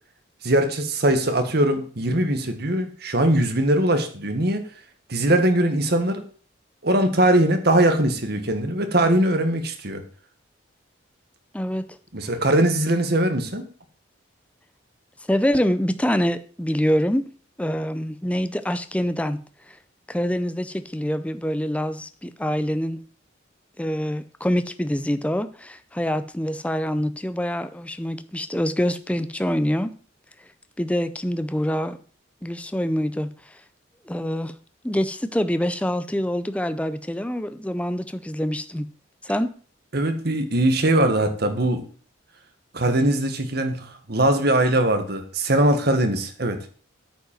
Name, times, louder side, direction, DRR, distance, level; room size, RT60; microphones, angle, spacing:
voice 1, 0.4-4.6 5.1-6.2 6.8-10.0 12.1-13.6 39.9-41.8 42.7-46.6, right 1 dB, 55° right, 1.5 m, -21 dB
voice 2, 11.5-12.0 15.3-17.3 17.6-19.4 19.7-19.8 20.1-23.0 23.8-29.9 30.8-32.0 32.4-33.6 34.1-34.5 34.8-38.9 39.2-39.5, equal, 5° left, 0.5 m, -25 dB
9.0 x 5.3 x 7.4 m
head